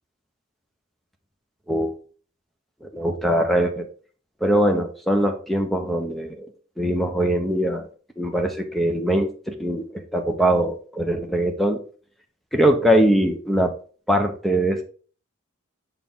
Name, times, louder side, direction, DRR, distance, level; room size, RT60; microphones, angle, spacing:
voice 1, 2.8-3.9 4.4-6.5 6.8-7.9 8.2-11.8 12.5-13.7 14.1-14.8, right 1 dB, ahead, 4 dB, 0.8 m, -22 dB
6.9 x 4.5 x 3.7 m, 0.40 s
head